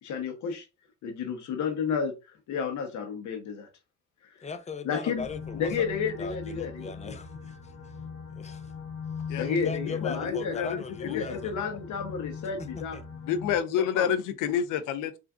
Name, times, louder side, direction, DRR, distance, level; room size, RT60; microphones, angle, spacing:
voice 1, 0.0-0.7 1.0-3.7 4.8-5.3 5.5-7.2 9.3-10.6 11.0-13.0 13.8-14.1, left 6 dB, 70° left, 0.9 m, -32 dB
voice 2, 4.4-7.7 8.3-8.7 9.4-11.6 12.6-13.0, left 4 dB, 25° left, 0.5 m, -39 dB
sound 1, 5.2-13.6, left 6 dB, 55° left, 1.1 m, -40 dB
voice 3, 10.0-10.8 11.0-11.4 13.3-15.2, left 8 dB, 90° left, 0.5 m, -29 dB
3.5 x 2.5 x 2.4 m
cardioid pair, 90°, 30 cm